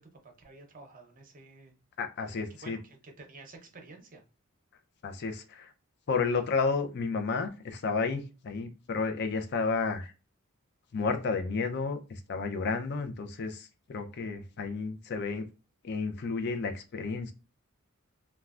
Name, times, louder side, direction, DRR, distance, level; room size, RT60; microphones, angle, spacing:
voice 1, 0.0-1.7 2.3-4.2, right 3 dB, 40° right, 0.7 m, -51 dB
voice 2, 2.0-2.8 5.0-5.7 6.1-10.1 10.9-15.5 15.8-17.3, left 4 dB, 50° left, 0.5 m, -32 dB
3.2 x 2.2 x 2.4 m
head